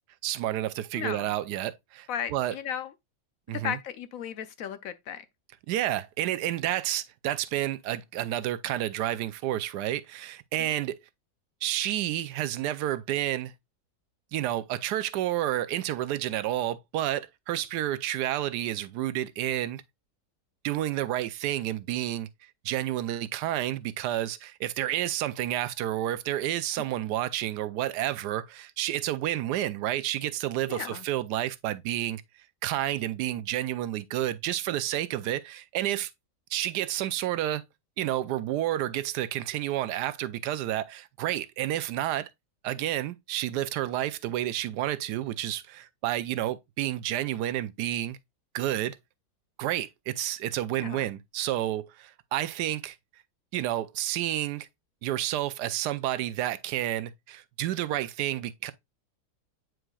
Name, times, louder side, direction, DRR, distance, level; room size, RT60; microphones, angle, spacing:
voice 1, 0.2-2.5 3.5-3.8 5.7-11.0 11.6-13.5 14.3-19.8 20.6-22.3 22.6-32.2 32.6-36.1 36.5-37.6 38.0-42.3 42.6-48.2 48.5-49.0 49.6-53.0 53.5-54.7 55.0-58.7, right 13 dB, 90° right, 1.2 m, -30 dB
voice 2, 0.9-1.3 2.1-2.9 3.5-5.3 10.6-10.8 30.7-31.1 50.7-51.1, left 9 dB, 65° left, 0.9 m, -35 dB
8.9 x 4.7 x 2.3 m
omnidirectional pair, 1.7 m